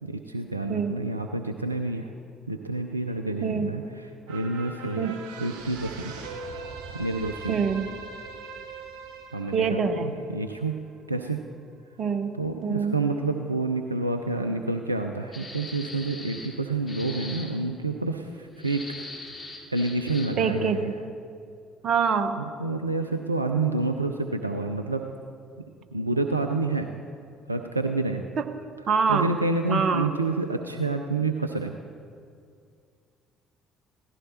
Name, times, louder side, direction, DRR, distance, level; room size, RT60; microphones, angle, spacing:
voice 1, 0.0-2.1 2.5-3.8 4.3-5.1 5.4-6.1 7.0-7.6 9.3-10.7 11.1-11.4 12.4-18.8 19.7-20.9 22.6-25.1 25.9-26.9 27.5-28.2 29.1-31.7, right 3 dB, 90° right, 6 dB, 0.5 m, -28 dB
voice 2, 3.4-3.7 5.0-5.2 7.5-7.9 9.5-10.1 12.0-12.3 12.6-13.0 20.4-20.9 21.8-22.4 28.4-28.5 28.9-29.3 29.7-30.1, right 5 dB, 50° right, 9 dB, 1.1 m, -25 dB
sound 1, 4.3-10.9 11.3-11.4, right 4 dB, 65° right, 1.4 m, -41 dB
sound 2, 15.3-16.5 16.9-17.5 18.6-20.4, left 2 dB, 20° left, 3.7 m, -41 dB
17.0 x 14.5 x 4.2 m, 2.3 s
figure-of-eight pair, 50°, 0 cm